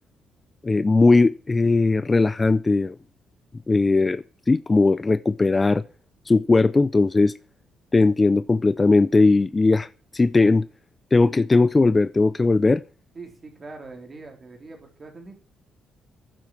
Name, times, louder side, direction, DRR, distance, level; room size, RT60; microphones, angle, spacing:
voice 1, 0.6-3.0 3.7-5.8 6.3-7.3 7.9-10.7 11.1-12.8, left 3 dB, 25° left, 0.4 m, -19 dB
voice 2, 13.1-15.3, right 3 dB, 35° right, 3.6 m, -42 dB
9.7 x 7.6 x 6.3 m
cardioid pair, 90°, 0 cm